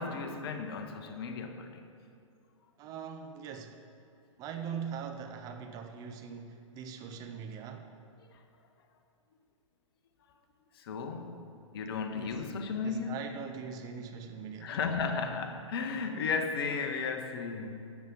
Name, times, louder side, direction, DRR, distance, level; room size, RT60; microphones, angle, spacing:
voice 1, 0.0-1.8 8.3-8.4 10.7-13.2 14.6-18.0, left 5 dB, 45° left, 1.1 m, -35 dB
voice 2, 2.8-3.8 4.4-7.9 12.1-12.4 12.8-14.8, right 7 dB, 20° right, 0.6 m, -42 dB
13.5 x 7.2 x 5.2 m
figure-of-eight pair, 120°, 17 cm